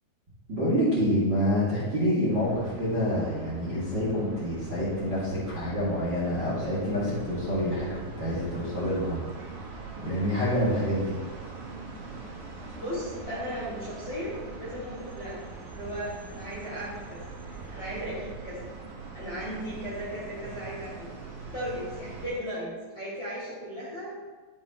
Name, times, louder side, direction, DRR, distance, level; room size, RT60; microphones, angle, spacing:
voice 1, 0.5-9.2 10.0-11.2, equal, 30° right, -9 dB, 2.5 m, -27 dB
sound 1, 2.3-22.3, right 3 dB, 60° right, 2.1 m, -42 dB
voice 2, 12.8-15.4 15.7-18.7 19.1-21.1 21.5-24.2, equal, 30° left, -9 dB, 2.6 m, -36 dB
12.5 x 7.5 x 3.1 m, 1.3 s
omnidirectional pair, 5.6 m